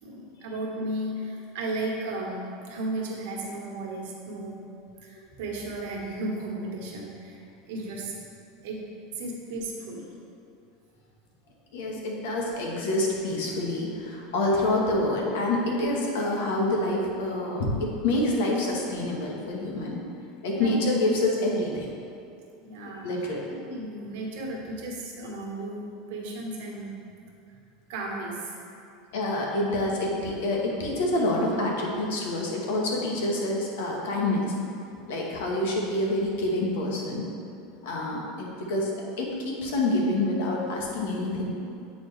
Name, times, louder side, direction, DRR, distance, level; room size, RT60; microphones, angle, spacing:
voice 1, 0.0-4.6 5.0-7.4 7.7-8.2 8.6-8.8 9.2-10.1 20.5-20.7 22.6-26.9 27.9-28.6, right 2 dB, 70° right, -2 dB, 1.3 m, -34 dB
voice 2, 11.7-20.0 20.4-21.9 23.0-23.4 29.1-34.5 35.1-37.2 37.8-38.9 39.2-41.5, left 1 dB, 85° left, -2 dB, 1.2 m, -27 dB
8.1 x 4.2 x 3.2 m, 2.5 s
supercardioid pair, 150°, 0 cm